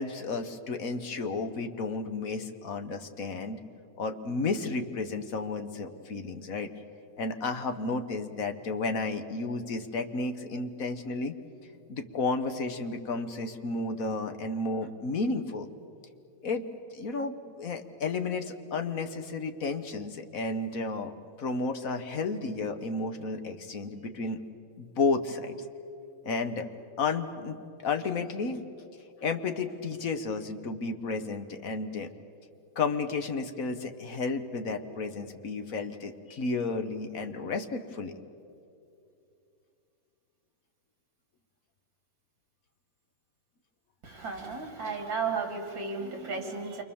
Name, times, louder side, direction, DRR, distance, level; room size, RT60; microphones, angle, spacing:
voice 1, 0.0-3.6 4.0-6.7 7.2-11.3 11.9-15.7 16.4-16.6 16.9-21.1 21.4-24.4 24.8-25.5 26.2-26.7 27.0-27.6 27.8-28.6 29.2-32.1 32.7-38.1, left 3 dB, 45° left, 7 dB, 1.4 m, -32 dB
voice 2, 44.0-46.8, right 4 dB, 60° right, 3 dB, 3.6 m, -34 dB
28.0 x 24.0 x 7.2 m, 2.6 s
omnidirectional pair, 2.4 m